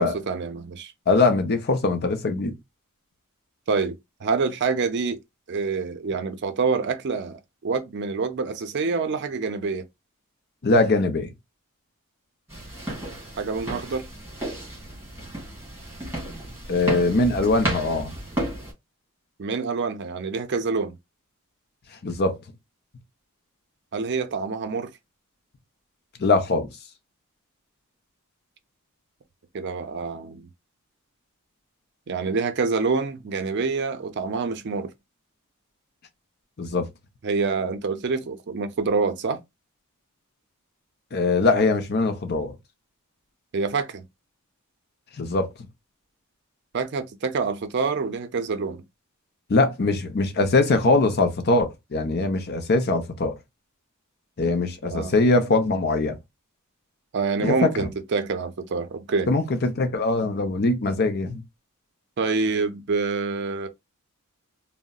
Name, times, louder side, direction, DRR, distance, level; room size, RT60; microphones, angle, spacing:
voice 1, 0.0-0.9 3.7-3.9 4.2-5.2 5.5-9.8 13.4-14.1 19.4-20.9 23.9-24.9 29.5-30.5 32.1-34.9 37.2-39.4 43.5-44.0 46.7-48.8 54.9-55.2 57.1-59.3 62.2-63.7, right 4 dB, 50° right, 0.5 m, -26 dB
voice 2, 1.1-2.5 10.6-11.3 16.7-18.2 22.0-22.4 26.2-26.7 36.6-36.9 41.1-42.5 45.2-45.5 49.5-53.3 54.4-56.2 57.4-57.9 59.3-61.4, left 3 dB, 45° left, 0.6 m, -22 dB
sound 1, 12.5-18.7, right 1 dB, 10° right, 1.8 m, -32 dB
3.8 x 2.0 x 2.2 m
head